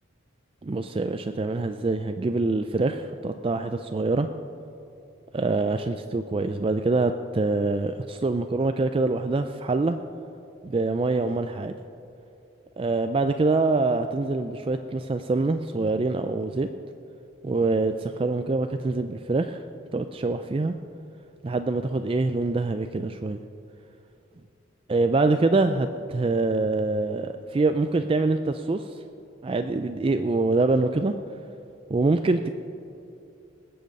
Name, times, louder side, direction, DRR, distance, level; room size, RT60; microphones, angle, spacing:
voice 1, 0.6-4.3 5.3-10.0 10.6-11.8 12.8-16.7 17.4-19.6 19.9-20.7 21.4-23.4 24.9-29.0 29.4-31.1 31.9-32.5, right 3 dB, 25° right, 8 dB, 0.3 m, -25 dB
20.0 x 7.9 x 5.3 m, 2.7 s
head